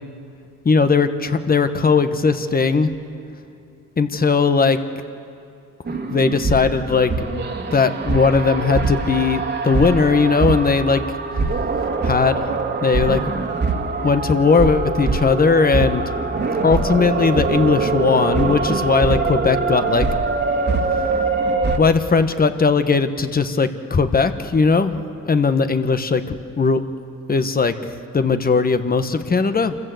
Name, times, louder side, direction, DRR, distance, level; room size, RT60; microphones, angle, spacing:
voice 1, 0.6-2.9 4.0-4.8 5.9-7.1 7.7-11.0 12.0-12.4 12.8-13.2 14.0-16.0 16.6-20.1 21.8-25.0 25.2-26.2 26.6-26.8 27.3-27.7 28.1-29.8, left 4 dB, 30° left, 9 dB, 1.3 m, -18 dB
sound 1, 5.9-21.8, right 4 dB, 35° right, 2.1 m, -23 dB
27.0 x 15.0 x 7.9 m, 2.5 s
cardioid pair, 90°, 30 cm